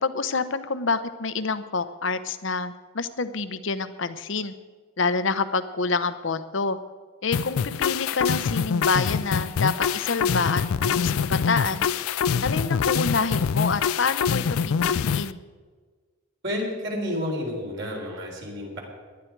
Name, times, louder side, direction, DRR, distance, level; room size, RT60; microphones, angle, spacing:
voice 1, 0.0-4.5 5.0-6.8 7.2-11.9 12.4-15.4, left 4 dB, 60° left, 12 dB, 0.8 m, -27 dB
sound 1, 7.3-15.3, left 6 dB, 85° left, 0.4 m, -25 dB
voice 2, 16.4-18.8, left 1 dB, 55° right, -1 dB, 3.8 m, -30 dB
18.0 x 11.5 x 4.6 m, 1.5 s
head